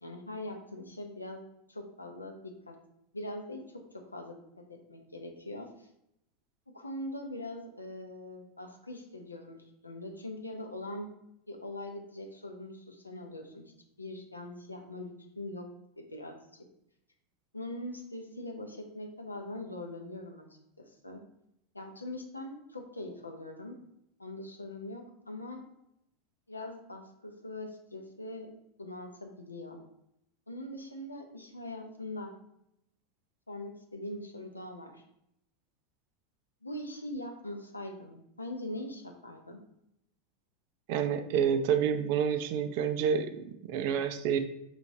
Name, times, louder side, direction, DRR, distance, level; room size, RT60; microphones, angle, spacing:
voice 1, 0.0-2.8 3.1-3.6 3.9-4.4 4.7-5.9 6.7-11.1 11.5-15.7 16.0-16.3 17.5-20.4 20.8-21.2 21.7-23.7 24.2-25.6 26.5-28.5 28.8-29.8 30.5-32.3 33.5-35.0 36.6-39.6, left 1 dB, 85° left, 3 dB, 0.6 m, -42 dB
voice 2, 40.9-44.4, right 7 dB, 50° right, 10 dB, 0.3 m, -28 dB
4.8 x 3.0 x 2.6 m, 0.79 s
figure-of-eight pair, 85°, 0 cm